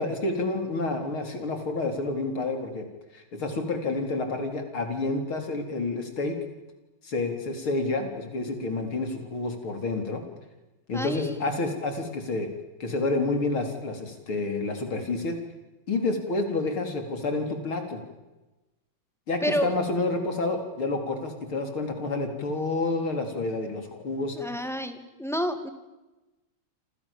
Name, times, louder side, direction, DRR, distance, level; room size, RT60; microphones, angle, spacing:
voice 1, 0.0-2.8 3.1-6.4 7.0-10.2 10.9-12.5 12.8-15.4 15.9-18.0 19.3-24.4, left 3 dB, 80° left, 5 dB, 5.0 m, -29 dB
voice 2, 10.9-11.3 19.4-19.7 24.4-25.7, equal, ahead, 8 dB, 2.4 m, -29 dB
28.5 x 27.0 x 7.5 m, 1.1 s
omnidirectional pair, 2.3 m